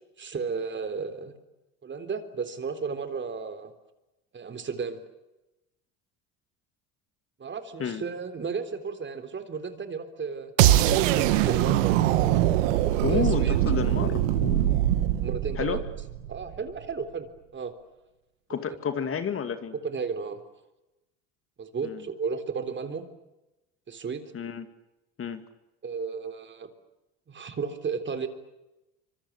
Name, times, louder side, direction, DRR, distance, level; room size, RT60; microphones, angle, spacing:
voice 1, 0.2-1.3 1.8-3.7 4.3-5.0 7.4-10.5 11.2-11.8 12.8-13.6 15.2-15.8 16.3-17.3 17.5-17.7 18.9-19.0 19.7-20.4 21.6-23.1 23.9-24.3 25.8-26.7 27.3-28.3, right 5 dB, 30° right, 9 dB, 3.7 m, -33 dB
sound 1, 10.6-16.6, right 13 dB, 90° right, 2.1 m, -23 dB
voice 2, 13.0-14.9 15.6-15.8 18.5-19.7 21.8-22.0 24.3-24.7 25.2-25.4, left 7 dB, 35° left, 10 dB, 2.5 m, -31 dB
25.5 x 25.0 x 8.3 m, 0.98 s
supercardioid pair, 100°, 37 cm